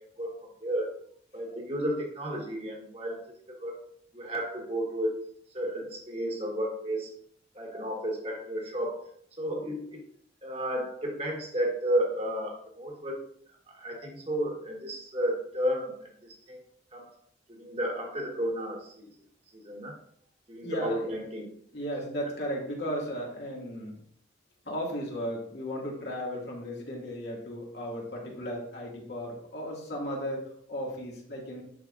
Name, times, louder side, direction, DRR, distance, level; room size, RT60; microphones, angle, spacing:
voice 1, 0.2-0.9 1.3-3.2 3.5-3.8 4.1-5.2 5.5-7.1 7.5-9.0 9.4-10.0 10.4-13.2 13.7-16.6 16.9-17.1 17.5-19.1 19.5-20.0 20.5-21.5, equal, 35° right, 0 dB, 1.4 m, -32 dB
voice 2, 20.6-21.2 21.7-24.0 24.7-31.6, equal, 70° left, -2 dB, 2.1 m, -35 dB
10.5 x 4.6 x 2.5 m, 0.63 s
head